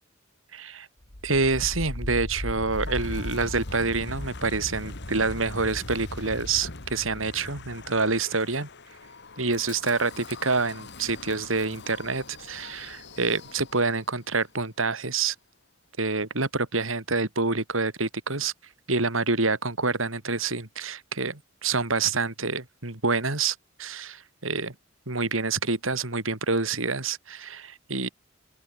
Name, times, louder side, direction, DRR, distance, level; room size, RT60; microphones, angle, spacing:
voice 1, 0.5-0.9 1.2-8.7 9.4-15.4 16.0-18.5 18.9-24.7 25.1-28.1, right 4 dB, 85° right, 3.6 m, -27 dB
Wind, 1.0-14.0, left 1 dB, 60° left, 2.8 m, -38 dB
open air
head